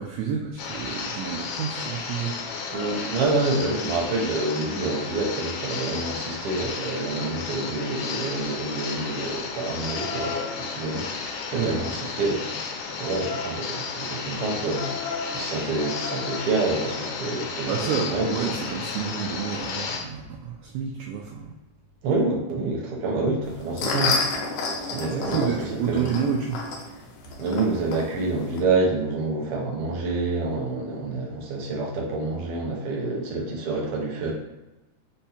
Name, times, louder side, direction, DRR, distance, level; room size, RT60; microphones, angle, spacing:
voice 1, 0.0-2.3 11.5-11.8 17.7-21.6 25.1-26.8, right 7 dB, 80° right, 0 dB, 1.6 m, -29 dB
sound 1, 0.6-20.0, left 5 dB, 90° left, 2.3 m, -33 dB
voice 2, 2.7-12.5 12.8-18.3 22.0-24.2 24.9-25.5 25.9-26.1 27.4-34.3, right 3 dB, 65° right, -2 dB, 1.5 m, -27 dB
sound 2, 23.4-28.6, left 3 dB, 70° left, 1.8 m, -30 dB
5.4 x 2.2 x 4.2 m, 1.0 s
omnidirectional pair, 3.6 m